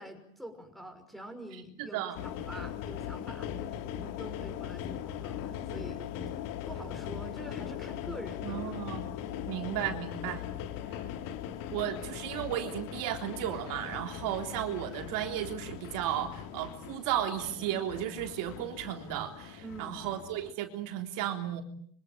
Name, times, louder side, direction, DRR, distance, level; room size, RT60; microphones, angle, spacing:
voice 1, 0.0-6.0 6.7-8.7 9.3-9.6 19.6-20.0, right 1 dB, ahead, 4 dB, 6.0 m, -46 dB
voice 2, 1.8-2.2 8.4-9.1 9.5-10.4 10.9-11.0 11.7-21.6, right 11 dB, 55° right, 5 dB, 3.6 m, -34 dB
sound 1, 2.2-20.5, left 10 dB, 55° left, 3.0 m, -40 dB
26.0 x 25.0 x 9.1 m, 0.65 s
supercardioid pair, 145°, 39 cm